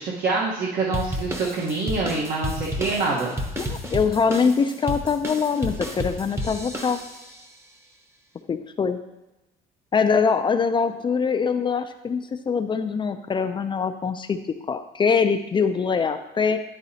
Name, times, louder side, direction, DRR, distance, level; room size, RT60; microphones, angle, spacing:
voice 1, 0.0-3.3, right 3 dB, 65° right, -4 dB, 1.2 m, -25 dB
sound 1, 0.9-7.4, equal, 15° right, 0.9 m, -32 dB
voice 2, 3.6-7.0 8.5-9.0 9.9-14.4 14.7-16.6, left 5 dB, 30° left, 8 dB, 0.4 m, -23 dB
10.5 x 4.0 x 2.8 m, 0.98 s
cardioid pair, 110°, 17 cm